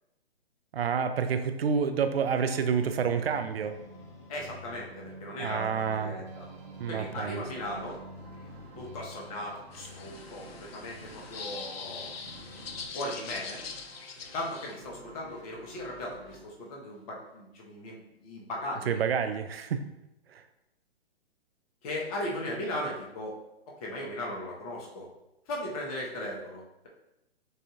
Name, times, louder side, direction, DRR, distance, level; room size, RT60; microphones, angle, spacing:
voice 1, 0.7-3.8 5.4-6.2 6.8-7.4 18.9-19.8 20.3-20.4, right 6 dB, 70° right, 8 dB, 0.5 m, -28 dB
sound 1, 2.1-12.9, right 1 dB, 10° left, 0.6 m, -48 dB
voice 2, 4.3-6.4 6.9-8.0 8.8-12.1 12.7-13.6 14.3-19.0 21.8-23.3 23.8-25.1 25.5-26.9, left 1 dB, 35° left, -2 dB, 1.1 m, -37 dB
sound 2, 6.3-17.5, right 2 dB, 45° right, 1.1 m, -54 dB
sound 3, 9.7-14.8, left 5 dB, 65° left, 0.6 m, -43 dB
6.5 x 2.6 x 2.4 m, 0.89 s
figure-of-eight pair, 130°, 32 cm